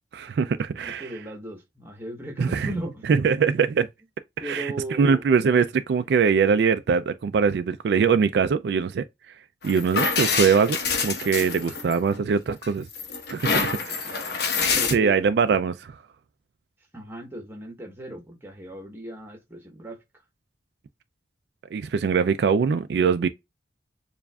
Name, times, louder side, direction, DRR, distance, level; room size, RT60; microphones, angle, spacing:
voice 1, 0.1-1.2 2.4-2.7 3.1-3.9 4.4-4.7 5.0-9.0 9.6-10.8 11.0-12.9 13.3-14.2 14.9-16.0 21.7-23.3, right 6 dB, 65° right, 0.3 m, -22 dB
voice 2, 0.8-3.0 4.4-5.2 5.9-6.0 13.9-14.4 14.7-15.2 16.9-20.0, right 1 dB, 15° right, 1.1 m, -37 dB
sound 1, 9.6-12.2 12.6-14.9, left 4 dB, 65° left, 1.0 m, -26 dB
7.0 x 2.5 x 2.2 m
head